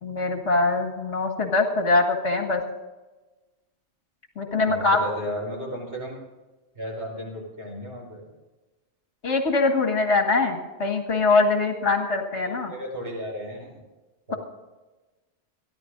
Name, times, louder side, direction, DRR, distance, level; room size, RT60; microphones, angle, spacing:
voice 1, 0.0-2.6 4.4-5.1 9.2-12.7, left 3 dB, 70° left, 2 dB, 2.1 m, -23 dB
voice 2, 4.4-6.2 6.8-8.3 12.4-13.8 14.3-14.4, equal, 55° right, -1 dB, 5.3 m, -34 dB
28.0 x 11.0 x 2.6 m, 1.2 s
omnidirectional pair, 1.2 m